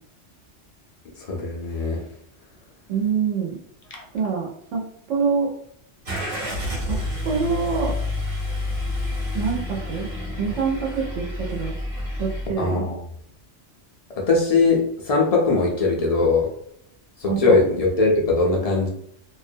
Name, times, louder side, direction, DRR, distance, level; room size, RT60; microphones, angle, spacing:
voice 1, 1.3-2.0 3.9-4.0 12.6-13.0 14.2-16.5 17.2-18.9, left 3 dB, 60° left, -1 dB, 0.3 m, -20 dB
voice 2, 2.9-3.6 4.1-4.8 5.1-5.5 6.9-7.0 7.2-8.0 9.3-10.1 10.4-11.7 12.2-12.8 17.3-17.6, right 5 dB, 85° right, -1 dB, 1.0 m, -25 dB
Car / Engine starting, 6.0-12.5, left 1 dB, 50° right, 1.0 m, -29 dB
2.4 x 2.1 x 2.6 m, 0.71 s
omnidirectional pair, 1.2 m